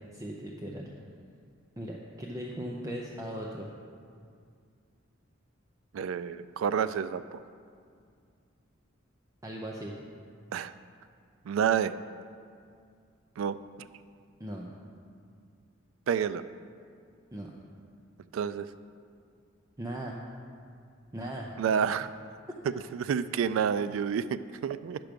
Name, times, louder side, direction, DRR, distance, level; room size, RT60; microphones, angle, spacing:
voice 1, 0.1-0.9 1.8-3.7 9.4-9.9 14.4-14.7 17.3-17.5 19.8-20.2 21.1-21.5, right 1 dB, 15° right, -2 dB, 0.6 m, -38 dB
voice 2, 5.9-7.4 10.5-10.7 11.5-11.9 13.4-13.6 16.1-16.4 18.3-18.7 21.6-22.1 22.9-25.0, right 7 dB, 70° right, 15 dB, 0.3 m, -29 dB
10.0 x 6.0 x 5.1 m, 2.3 s
head